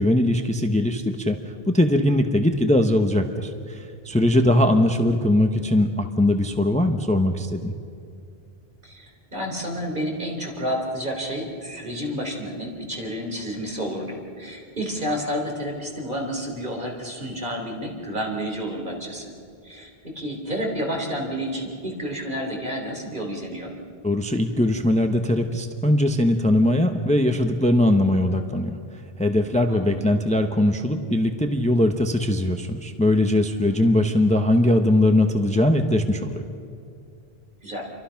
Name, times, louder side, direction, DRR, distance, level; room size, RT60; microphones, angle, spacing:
voice 1, 0.0-1.4 1.7-7.7 24.0-28.8 29.2-36.4, left 1 dB, 5° left, 5 dB, 1.0 m, -20 dB
voice 2, 8.8-19.3 19.6-23.7 29.7-30.1 33.7-34.1 37.6-37.9, equal, 50° right, 0 dB, 4.0 m, -30 dB
28.5 x 24.0 x 5.9 m, 2.4 s
omnidirectional pair, 1.0 m